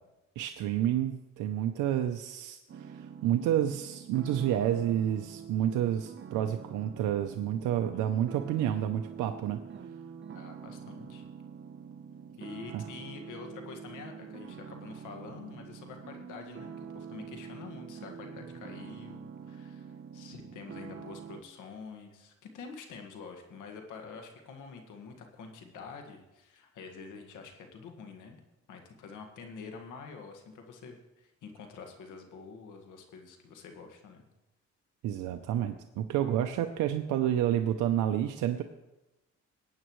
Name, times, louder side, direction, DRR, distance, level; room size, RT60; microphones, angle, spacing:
voice 1, 0.4-9.6 12.7-12.8 35.0-38.6, right 11 dB, 90° right, 6 dB, 0.6 m, -29 dB
sound 1, 2.7-21.4, right 7 dB, 40° right, 0.9 m, -45 dB
voice 2, 10.3-11.3 12.4-28.4 28.7-34.2, left 5 dB, 85° left, 4 dB, 1.8 m, -47 dB
19.0 x 9.0 x 3.1 m, 1.0 s
cardioid pair, 90°, 30 cm